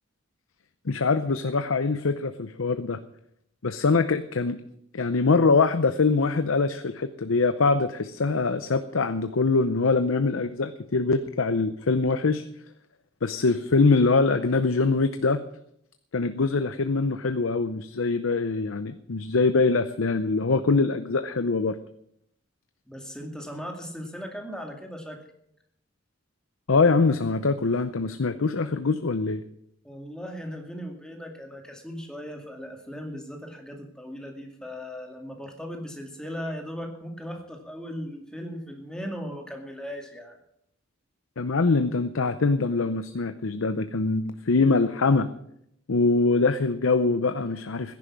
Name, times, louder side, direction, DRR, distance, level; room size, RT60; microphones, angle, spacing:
voice 1, 0.9-3.0 3.6-4.6 4.9-12.4 13.2-15.4 16.1-21.8 26.7-29.4 41.4-45.3 45.9-48.0, left 3 dB, 80° left, 10 dB, 0.7 m, -23 dB
voice 2, 22.9-25.2 29.8-40.4, equal, 5° left, 2 dB, 2.3 m, -38 dB
16.0 x 10.5 x 6.1 m, 0.74 s
head